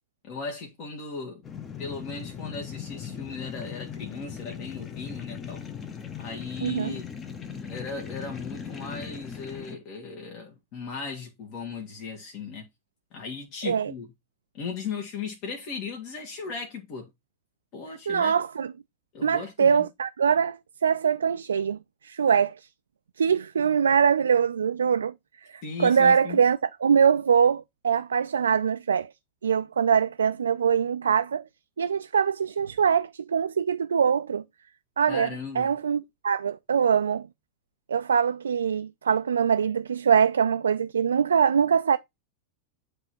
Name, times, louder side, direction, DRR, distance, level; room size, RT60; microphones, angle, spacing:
voice 1, 0.3-1.4 1.8-5.6 6.2-7.1 7.7-12.6 13.1-14.1 14.5-17.1 17.7-18.3 19.1-19.8 25.6-26.4 35.1-35.7, left 5 dB, 40° left, 1.5 m, -37 dB
sound 1, 1.4-9.8, left 7 dB, 25° left, 1.0 m, -39 dB
voice 2, 6.6-7.0 13.6-13.9 18.1-18.7 19.2-20.6 20.8-21.8 22.0-22.5 23.2-25.1 25.5-29.1 29.4-31.4 31.8-34.4 35.0-35.3 35.6-37.3 37.9-42.0, right 7 dB, 70° right, 0.3 m, -23 dB
9.5 x 3.5 x 4.3 m
figure-of-eight pair, 90°, 0 cm